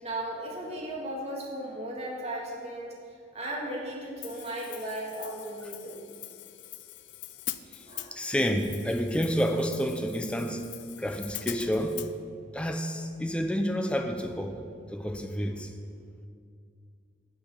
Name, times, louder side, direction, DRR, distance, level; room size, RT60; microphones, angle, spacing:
voice 1, 0.0-3.0 3.3-6.0 7.9-8.2, right 1 dB, 35° right, -2 dB, 1.7 m, -36 dB
Hi-hat, 4.2-12.1, left 14 dB, 70° left, 0.4 m, -43 dB
voice 2, 7.7-10.7 11.0-12.0 12.5-14.6 14.9-15.7, equal, 5° left, 5 dB, 0.5 m, -29 dB
8.6 x 6.2 x 6.4 m, 2.3 s
head